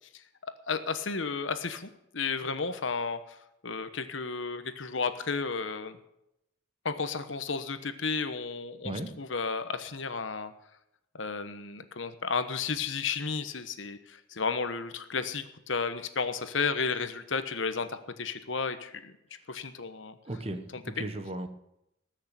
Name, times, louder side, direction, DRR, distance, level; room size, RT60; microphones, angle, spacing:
voice 1, 0.7-3.4 3.6-6.0 6.8-10.5 11.1-19.1 19.5-20.2 20.7-20.8, left 5 dB, 70° left, 10 dB, 1.1 m, -33 dB
voice 2, 20.2-21.5, right 1 dB, 30° right, 9 dB, 1.1 m, -36 dB
19.5 x 6.6 x 8.2 m, 0.83 s
head